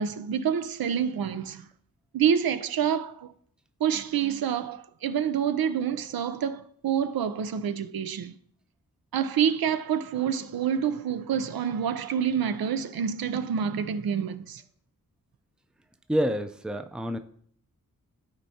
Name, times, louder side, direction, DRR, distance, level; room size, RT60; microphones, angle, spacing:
voice 1, 0.0-1.7 2.1-3.3 3.8-8.3 9.1-14.6, right 8 dB, 85° right, 0.6 m, -27 dB
voice 2, 16.1-17.2, equal, ahead, 0.5 m, -27 dB
13.5 x 4.5 x 2.8 m
wide cardioid pair, 80°, 35 cm